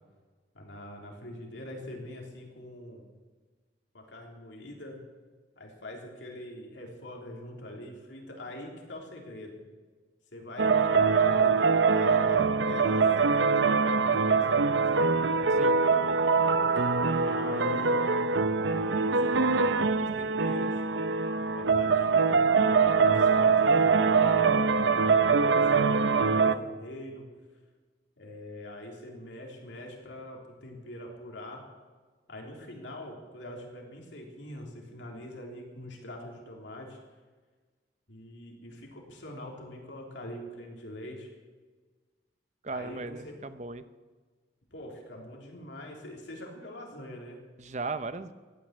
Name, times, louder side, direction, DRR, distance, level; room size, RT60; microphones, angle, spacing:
voice 1, 0.5-3.1 3.9-5.0 5.6-9.6 10.3-15.2 16.7-16.9 17.2-18.0 18.7-20.8 21.4-27.3 28.2-31.6 32.3-37.0 38.1-41.3 42.7-43.4 44.7-47.4, left 1 dB, 85° left, 0 dB, 3.5 m, -43 dB
sound 1, 10.6-26.6, right 4 dB, 85° right, 0.7 m, -23 dB
voice 2, 42.6-43.8 47.6-48.3, right 3 dB, 40° right, 12 dB, 0.7 m, -36 dB
15.0 x 9.6 x 8.8 m, 1.4 s
head